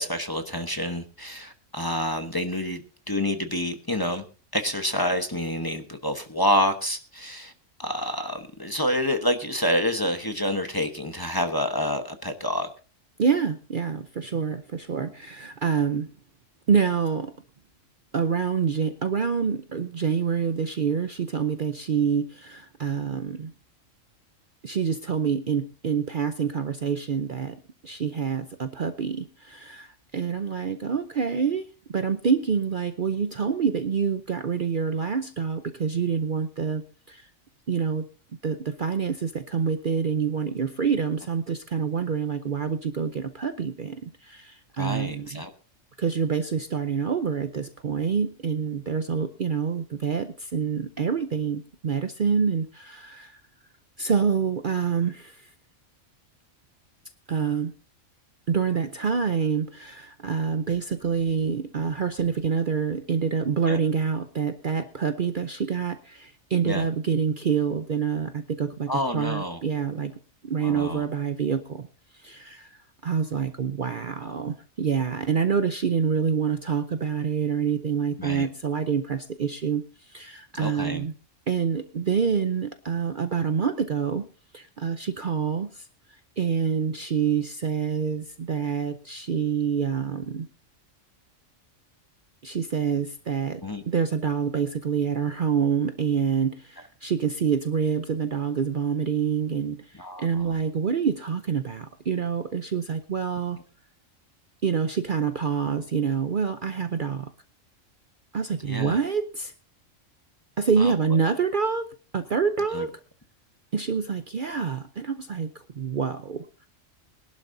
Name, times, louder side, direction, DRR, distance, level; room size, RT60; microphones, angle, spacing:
voice 1, 0.0-4.3 4.5-7.5 7.8-12.7 44.8-45.5 63.7-63.8 66.6-66.9 68.9-69.6 70.6-71.0 74.2-74.4 78.2-78.5 80.5-81.0 93.6-93.8 100.0-100.5 108.6-109.0 110.8-111.2 112.7-112.9, equal, 20° left, 6 dB, 1.0 m, -28 dB
voice 2, 13.2-16.1 16.7-17.3 18.1-23.5 24.6-27.6 27.8-31.7 31.9-37.3 37.7-38.0 38.4-45.4 46.0-53.4 54.0-55.5 57.3-57.7 58.5-70.1 70.4-71.9 72.1-72.7 73.0-81.1 81.5-84.3 84.5-85.9 86.4-90.5 92.4-103.6 104.6-107.3 108.3-109.5 110.6-111.9 112.1-112.9 113.7-116.7, right 6 dB, 50° right, 9 dB, 0.7 m, -27 dB
21.5 x 11.5 x 2.7 m, 0.34 s
omnidirectional pair, 1.3 m